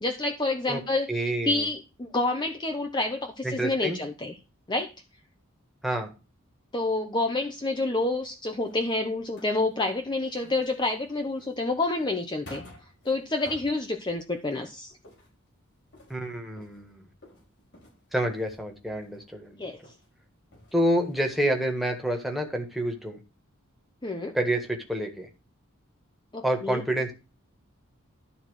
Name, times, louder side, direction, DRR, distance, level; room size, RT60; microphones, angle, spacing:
voice 1, 0.0-4.3 4.7-4.9 6.7-12.6 13.0-14.9 19.6-19.8 24.0-24.4 26.3-26.8, left 2 dB, 20° left, 4 dB, 0.8 m, -28 dB
voice 2, 1.1-1.6 3.4-4.0 5.8-6.1 16.1-17.0 18.1-19.7 20.7-23.2 24.3-25.3 26.4-27.1, right 1 dB, ahead, 2 dB, 1.6 m, -28 dB
sound 1, 8.0-10.0 10.3-14.6 14.9-19.5 19.8-20.1 20.4-22.0 22.3-22.4 22.7-22.8, left 1 dB, 55° left, 5.3 m, -52 dB
12.5 x 4.2 x 6.3 m, 0.32 s
head